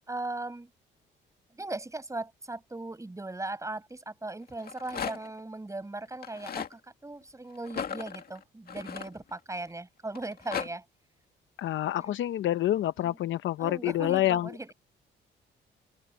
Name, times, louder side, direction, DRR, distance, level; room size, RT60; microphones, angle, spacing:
voice 1, 0.1-0.7 1.5-10.8 12.0-12.1 13.0-13.2 13.6-14.7, right 2 dB, 15° right, 7.9 m, -38 dB
Rattle, 4.5-5.4 6.1-6.7 7.6-9.6 10.1-10.7, left 7 dB, 50° left, 2.1 m, -37 dB
voice 2, 11.6-14.7, left 13 dB, 75° left, 0.8 m, -28 dB
open air
cardioid pair, 90°, 20 cm